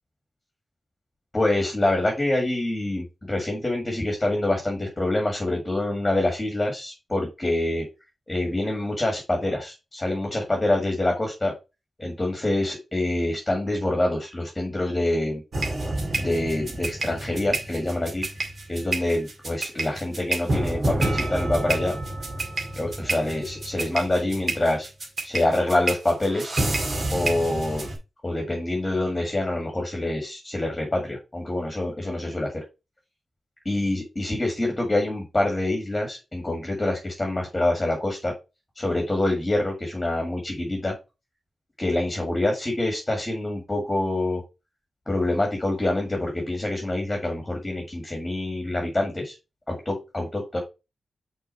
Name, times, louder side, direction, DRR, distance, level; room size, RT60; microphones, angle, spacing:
voice 1, 1.3-7.9 8.3-11.5 12.0-15.4 16.2-18.2 18.7-22.0 22.8-24.9 25.2-26.5 27.1-27.9 28.2-32.6 33.7-38.3 38.8-40.9 41.8-44.4 45.1-49.4 49.7-50.6, left 1 dB, 15° left, 1 dB, 1.9 m, -26 dB
sound 1, 15.5-28.0, right 2 dB, 50° right, 2.1 m, -29 dB
6.1 x 3.8 x 4.4 m, 0.26 s
wide cardioid pair, 125°, 0 cm